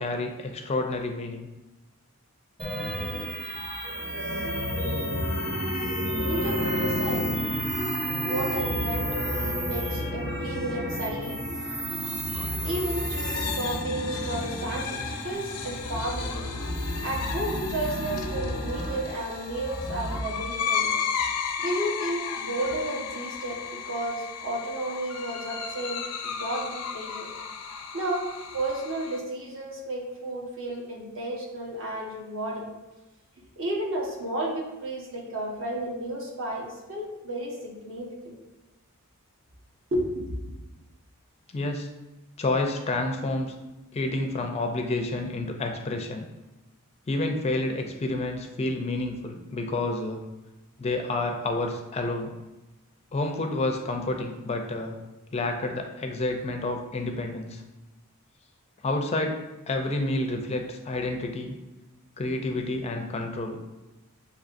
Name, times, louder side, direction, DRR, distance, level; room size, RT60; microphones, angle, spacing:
voice 1, 0.0-1.5 41.5-41.9 42.4-43.5 43.9-46.2 47.1-50.2 50.8-52.3 53.1-55.0 55.3-57.6 58.8-61.6 62.2-63.6, left 2 dB, 30° left, 4 dB, 0.4 m, -29 dB
sound 1, 2.6-20.2, equal, 25° right, 1.1 m, -31 dB
voice 2, 6.2-7.3 8.2-11.4 12.6-16.3 17.0-20.9 21.6-27.3 27.9-32.7 33.6-38.3 39.9-40.2, right 1 dB, 60° right, -2 dB, 1.1 m, -32 dB
sound 2, 11.9-29.2, left 6 dB, 85° left, 0.5 m, -35 dB
6.9 x 2.8 x 2.5 m, 1.0 s
head